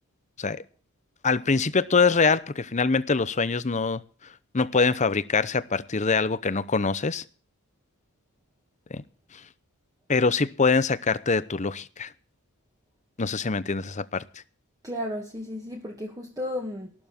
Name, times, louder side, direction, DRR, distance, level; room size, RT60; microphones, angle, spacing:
voice 1, 1.2-4.0 4.5-7.2 8.9-9.0 10.1-12.1 13.2-14.2, left 4 dB, 35° left, 0.8 m, -24 dB
voice 2, 14.8-16.9, left 1 dB, 15° right, 1.9 m, -33 dB
15.0 x 12.0 x 4.4 m
head